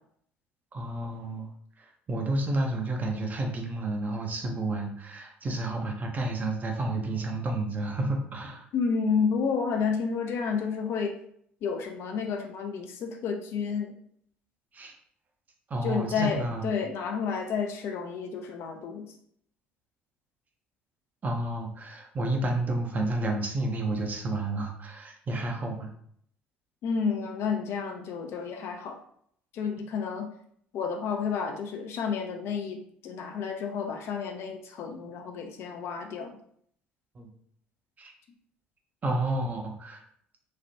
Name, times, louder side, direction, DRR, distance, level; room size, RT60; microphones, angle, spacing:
voice 1, 0.7-1.5 1.8-8.7 14.7-14.9 15.7-16.7 21.2-25.9 37.1-37.3 38.0-38.1 39.0-40.0, right 2 dB, 30° right, 2 dB, 0.7 m, -30 dB
voice 2, 8.7-11.2 11.6-13.9 15.8-19.1 26.8-29.0 29.5-30.3 30.7-36.4, left 6 dB, 50° left, 3 dB, 0.4 m, -30 dB
3.1 x 2.4 x 2.6 m, 0.65 s
figure-of-eight pair, 60°, 6 cm